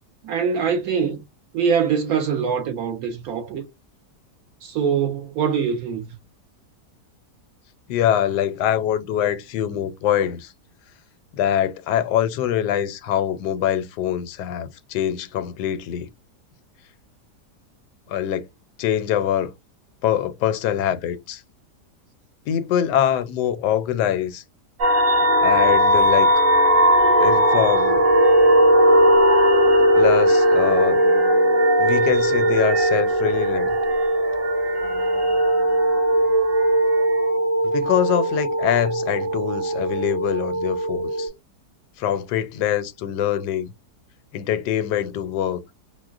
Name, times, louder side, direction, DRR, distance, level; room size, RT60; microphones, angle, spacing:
voice 1, 0.2-1.2 1.5-3.6 4.6-6.1, right 6 dB, 70° right, 1.1 m, -23 dB
voice 2, 7.9-10.5 11.3-16.1 18.1-18.5 18.8-19.5 20.0-21.4 22.5-24.4 25.4-26.3 27.2-28.0 30.0-31.0 31.8-33.8 37.6-41.3 42.0-43.7 44.3-45.6, left 10 dB, 80° left, 1.2 m, -24 dB
sound 1, 24.8-41.3, right 1 dB, 45° right, 1.8 m, -18 dB
4.8 x 2.1 x 2.3 m
omnidirectional pair, 1.8 m